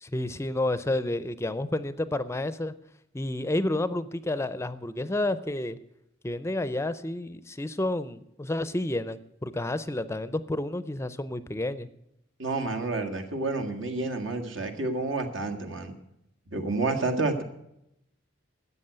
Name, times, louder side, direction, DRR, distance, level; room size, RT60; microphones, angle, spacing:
voice 1, 0.0-2.7 3.1-5.8 6.2-11.9, left 1 dB, 15° left, 14 dB, 0.5 m, -30 dB
voice 2, 12.4-15.9 16.5-17.4, right 3 dB, 75° right, 6 dB, 1.7 m, -29 dB
13.0 x 8.1 x 7.9 m, 0.81 s
head